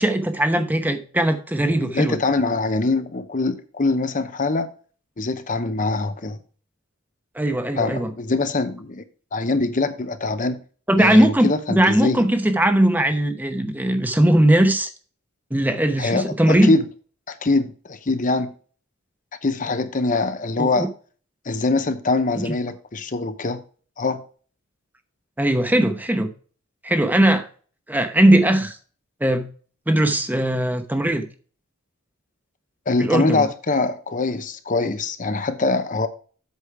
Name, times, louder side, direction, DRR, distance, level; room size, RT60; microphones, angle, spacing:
voice 1, 0.0-2.2 7.3-8.1 10.9-14.9 15.5-16.7 20.6-20.9 22.3-22.5 25.4-26.3 26.8-27.5 27.9-28.8 29.2-29.5 29.9-31.2 33.0-33.4, right 1 dB, 10° right, 0.9 m, -19 dB
voice 2, 1.8-4.7 5.2-6.4 7.8-9.0 9.3-10.6 11.0-12.2 16.0-16.8 17.3-18.5 19.4-20.9 21.5-23.6 24.0-24.2 32.9-36.1, left 3 dB, 40° left, 0.8 m, -23 dB
8.3 x 6.3 x 4.8 m
head